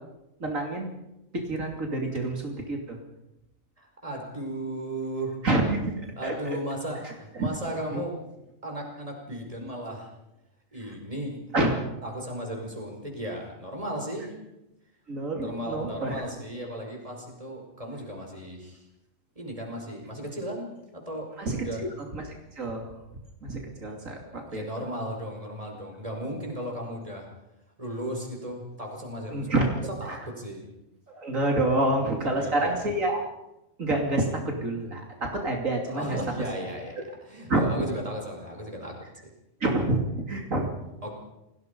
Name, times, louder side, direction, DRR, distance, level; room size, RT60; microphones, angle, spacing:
voice 1, 0.4-0.9 1.3-3.0 5.4-5.9 6.2-6.3 7.0-7.1 7.4-7.5 7.9-8.0 10.9-11.0 11.5-11.7 15.1-16.2 21.4-21.9 22.1-22.9 23.4-24.6 29.3-29.7 30.1-30.2 31.1-33.2 33.8-36.2 37.5-37.9 39.6-40.0 40.3-40.7, right 2 dB, 75° right, 1 dB, 3.3 m, -27 dB
voice 2, 3.8-5.4 6.2-8.2 8.6-10.1 10.7-11.5 12.0-14.4 15.4-18.9 19.4-21.8 24.3-27.3 27.8-29.6 30.0-30.7 31.9-32.9 35.9-39.0 41.0-41.1, right 1 dB, 25° right, 1 dB, 5.5 m, -35 dB
28.5 x 19.5 x 5.4 m, 0.91 s
omnidirectional pair, 1.4 m